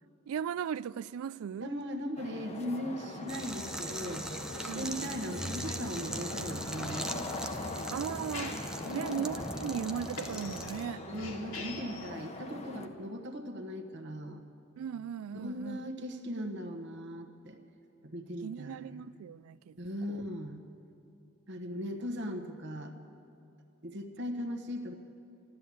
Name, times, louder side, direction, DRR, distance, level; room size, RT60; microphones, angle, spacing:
voice 1, 0.3-1.7 4.7-4.9 7.9-8.6 8.9-11.1 14.8-15.8 18.4-19.8 20.1-20.2, right 8 dB, 80° right, 0.3 m, -37 dB
voice 2, 1.6-4.3 4.6-7.3 8.8-9.4 11.1-14.4 15.3-17.6 18.0-19.0 19.8-20.6 21.5-22.9 23.8-24.9, equal, 55° right, 1.3 m, -39 dB
sound 1, 2.2-12.9, left 2 dB, 30° left, 0.9 m, -41 dB
sound 2, 3.3-10.9, right 1 dB, 5° right, 0.5 m, -41 dB
sound 3, 5.2-12.1, left 1 dB, 70° left, 2.1 m, -44 dB
13.0 x 12.5 x 8.5 m
head